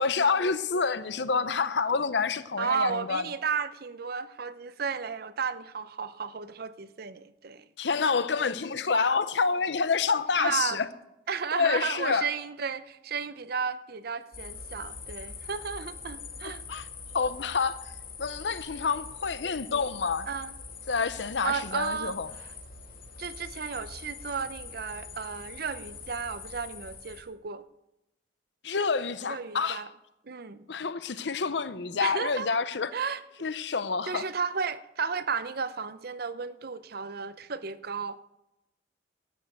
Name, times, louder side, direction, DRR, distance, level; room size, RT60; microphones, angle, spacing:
voice 1, 0.0-3.2 7.8-10.9 11.5-12.3 16.4-16.9 17.1-17.8 18.2-20.3 20.9-22.3 28.6-29.8 30.7-32.9 33.4-34.3, left 5 dB, 70° left, 0.7 m, -28 dB
voice 2, 2.6-7.6 10.4-10.8 11.3-16.6 20.3-20.5 21.4-22.2 23.2-27.6 29.3-29.9 30.3-30.7 32.0-32.5 32.9-33.2 34.1-38.2, right 5 dB, 55° right, 0.7 m, -33 dB
sound 1, 14.3-27.2, left 5 dB, 55° left, 2.6 m, -43 dB
12.5 x 9.1 x 6.6 m
head